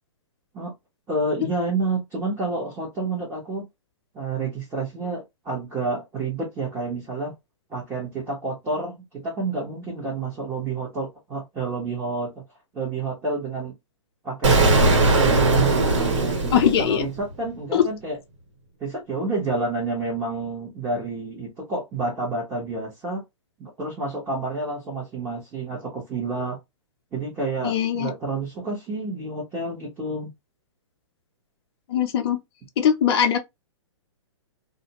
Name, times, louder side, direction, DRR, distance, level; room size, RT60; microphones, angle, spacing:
voice 1, 1.1-3.7 4.1-7.3 7.7-12.4 12.7-13.7 14.2-18.2 18.8-23.2 23.6-26.6 27.1-30.3, right 3 dB, 15° right, 1.0 m, -29 dB
Explosion, 14.4-17.3, right 2 dB, 70° right, 1.4 m, -19 dB
voice 2, 16.5-17.1 17.7-17.8 27.6-28.1 31.9-32.4 32.8-33.4, left 9 dB, 50° left, 0.6 m, -20 dB
2.4 x 2.1 x 2.8 m
hypercardioid pair, 145°, 16 cm